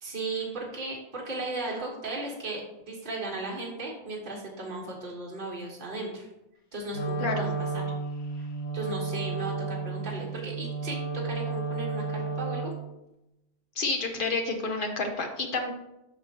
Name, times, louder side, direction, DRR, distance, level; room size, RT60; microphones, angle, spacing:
voice 1, 0.0-6.3 6.7-7.8 8.4-8.5 8.7-12.7, right 2 dB, 50° right, -3 dB, 1.7 m, -36 dB
Wind instrument woodwind instrument, 6.9-12.9, right 4 dB, 80° left, 1.2 m, -32 dB
voice 2, 7.2-7.5 13.8-15.7, left 3 dB, 55° left, 4 dB, 1.2 m, -29 dB
9.6 x 5.7 x 2.9 m, 0.91 s
omnidirectional pair, 1.1 m